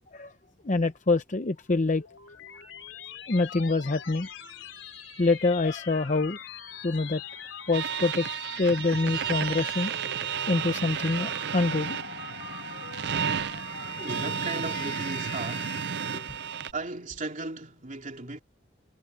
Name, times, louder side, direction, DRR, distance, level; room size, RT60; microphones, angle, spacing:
voice 1, 0.6-2.0 3.3-4.3 5.2-6.4 6.8-7.2 7.7-9.9 10.5-12.0 16.1-16.2, left 3 dB, 40° left, 0.7 m, -26 dB
sound 1, 1.6-16.3, left 7 dB, 85° left, 3.7 m, -43 dB
sound 2, 7.7-16.7, right 8 dB, 60° right, 0.6 m, -32 dB
voice 2, 14.0-15.8 16.7-18.4, right 3 dB, 40° right, 3.0 m, -36 dB
head